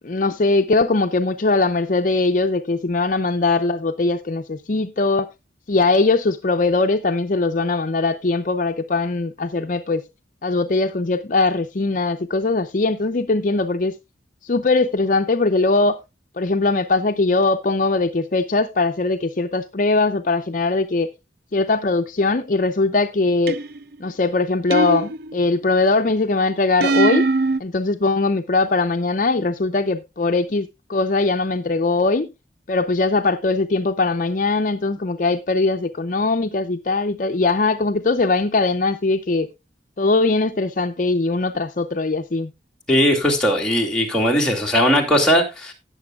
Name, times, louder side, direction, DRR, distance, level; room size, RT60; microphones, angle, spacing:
voice 1, 0.0-5.3 5.7-10.0 10.4-13.9 14.4-16.0 16.4-21.1 21.5-23.6 24.0-27.3 27.6-32.3 32.7-39.5 40.0-42.5, left 3 dB, 45° left, 0.6 m, -20 dB
sound 1, 23.5-24.0 24.7-25.6 26.8-27.6, right 3 dB, 55° right, 0.4 m, -21 dB
voice 2, 42.9-45.7, equal, 5° left, 2.4 m, -18 dB
18.0 x 7.0 x 2.4 m
head